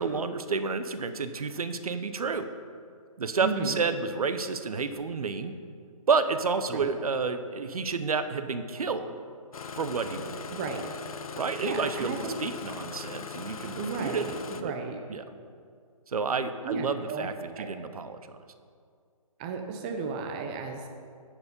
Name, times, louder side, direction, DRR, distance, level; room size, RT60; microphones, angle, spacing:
voice 1, 0.0-2.5 3.2-5.5 6.1-9.2 9.7-10.4 11.3-14.2 14.5-14.7 15.1-15.2 16.1-18.3, right 5 dB, 80° right, 10 dB, 0.7 m, -30 dB
voice 2, 3.4-3.8 6.7-6.9 10.5-10.9 11.6-12.3 13.7-14.4 14.6-15.0 16.6-17.3 17.6-17.7 19.4-20.8, right 4 dB, 15° right, 4 dB, 0.4 m, -33 dB
Engine starting, 9.5-14.6, left 5 dB, 70° left, 0.7 m, -40 dB
10.5 x 4.9 x 5.1 m, 2.2 s
hypercardioid pair, 155°, 19 cm